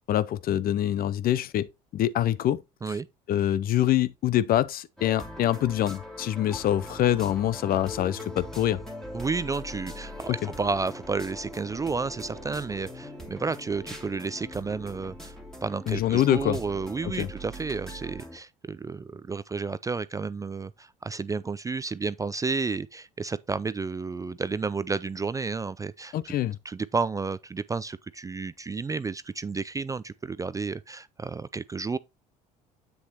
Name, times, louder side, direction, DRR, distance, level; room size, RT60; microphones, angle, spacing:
voice 1, 0.1-1.7 1.9-2.6 3.3-8.8 15.9-16.6 17.0-17.3 26.1-26.6, left 12 dB, 45° left, 0.5 m, -25 dB
sound 1, 5.0-18.4, equal, ahead, 2.3 m, -41 dB
voice 2, 9.1-15.4 15.6-26.4 26.7-32.0, right 4 dB, 15° right, 0.4 m, -31 dB
7.9 x 6.9 x 2.9 m
hypercardioid pair, 65°, 20 cm